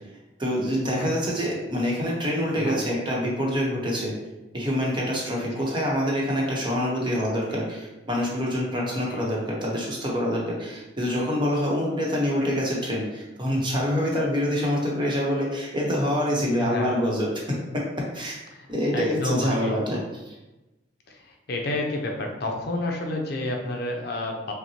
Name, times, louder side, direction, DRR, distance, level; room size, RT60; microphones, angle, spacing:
voice 1, 0.4-4.1 4.5-17.8 18.1-18.4 18.7-20.4, equal, 25° right, -3 dB, 0.9 m, -26 dB
voice 2, 5.4-5.7 9.1-9.3 14.0-14.1 16.6-17.0 18.5-19.8 21.1-24.5, left 2 dB, 60° left, 1 dB, 0.6 m, -30 dB
5.6 x 2.2 x 2.8 m, 1.0 s
head